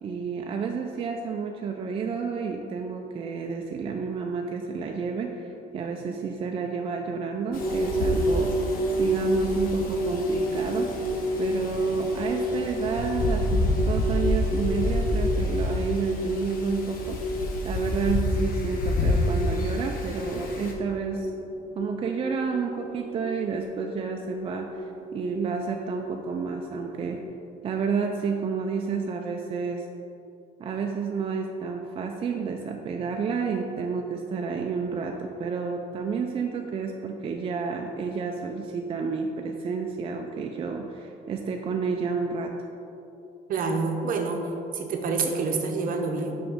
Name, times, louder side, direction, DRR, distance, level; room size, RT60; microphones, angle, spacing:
voice 1, 0.0-8.5 9.0-10.9 11.4-17.2 17.6-21.3 21.8-24.9 25.1-27.2 27.6-29.9 30.6-42.5, right 5 dB, 35° right, 2 dB, 0.4 m, -30 dB
Wind, 7.5-20.7, left 2 dB, 55° left, 0.9 m, -29 dB
sound 1, 7.5-27.2, right 1 dB, 25° left, 1.3 m, -31 dB
voice 2, 43.5-44.4 44.7-46.3, right 4 dB, 55° right, 3 dB, 0.8 m, -27 dB
5.9 x 5.1 x 3.6 m, 2.8 s
cardioid pair, 110°, 17 cm